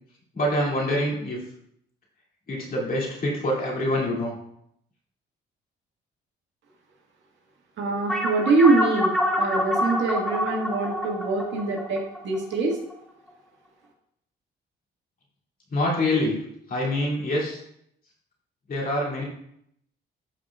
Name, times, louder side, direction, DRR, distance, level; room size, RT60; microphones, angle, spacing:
voice 1, 0.3-1.4 2.5-4.3 15.7-16.4 16.7-17.6 18.7-19.2, left 1 dB, 45° left, -3 dB, 2.6 m, -25 dB
voice 2, 7.8-12.8, right 3 dB, 70° right, 0 dB, 1.8 m, -24 dB
sound 1, 8.1-12.9, equal, ahead, 1.0 m, -27 dB
13.0 x 4.9 x 2.4 m, 0.72 s
cardioid pair, 90°, 20 cm